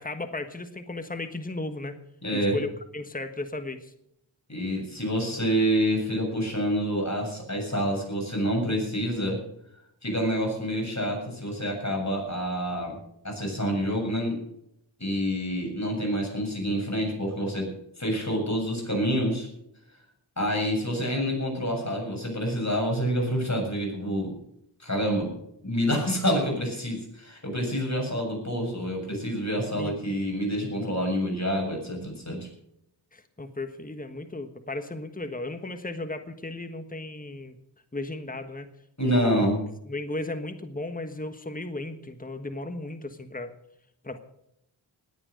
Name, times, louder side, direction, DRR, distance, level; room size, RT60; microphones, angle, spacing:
voice 1, 0.0-2.0 2.3-3.9 29.8-29.9 33.1-37.6 37.9-38.7 39.0-39.4 39.9-43.5 44.0-44.2, left 2 dB, 15° left, 8 dB, 1.4 m, -35 dB
voice 2, 2.2-2.6 4.5-9.4 10.0-13.0 13.2-14.4 15.0-17.7 18.0-19.5 20.4-24.3 24.8-25.3 25.6-32.5 39.0-39.6, equal, 35° left, 1 dB, 7.5 m, -27 dB
19.5 x 9.0 x 6.5 m, 0.77 s
wide cardioid pair, 40°, 48 cm